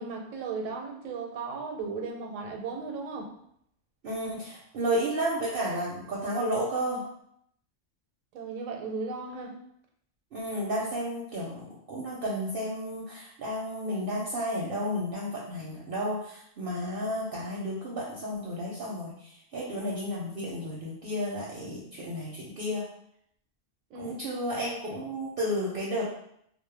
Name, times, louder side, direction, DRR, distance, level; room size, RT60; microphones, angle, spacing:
voice 1, 0.0-3.3 8.3-9.5 23.9-24.2, right 4 dB, 80° right, 2 dB, 0.9 m, -36 dB
voice 2, 4.0-7.0 10.3-22.9 24.0-26.1, equal, 60° right, -5 dB, 0.6 m, -32 dB
2.2 x 2.0 x 3.1 m, 0.71 s
omnidirectional pair, 1.3 m